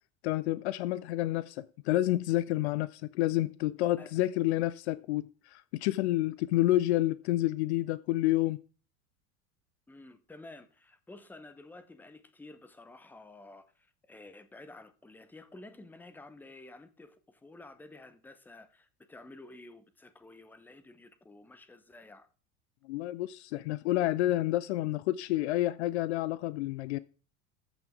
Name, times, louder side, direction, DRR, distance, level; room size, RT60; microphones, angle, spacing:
voice 1, 0.2-8.6 22.8-27.0, left 16 dB, 50° left, 0.5 m, -29 dB
voice 2, 9.9-22.3, left 2 dB, 5° left, 0.7 m, -51 dB
14.0 x 6.0 x 3.5 m
figure-of-eight pair, 75°, 45 cm